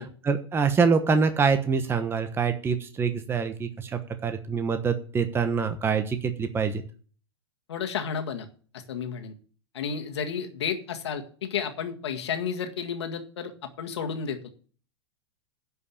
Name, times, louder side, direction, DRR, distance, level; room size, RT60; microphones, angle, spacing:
voice 1, 0.0-6.8, right 5 dB, 15° right, 8 dB, 1.0 m, -25 dB
voice 2, 7.7-8.5 8.7-9.3 9.7-13.5 13.8-14.5, left 7 dB, 75° left, 5 dB, 1.8 m, -32 dB
11.0 x 5.5 x 7.1 m, 0.42 s
hypercardioid pair, 110°, 14 cm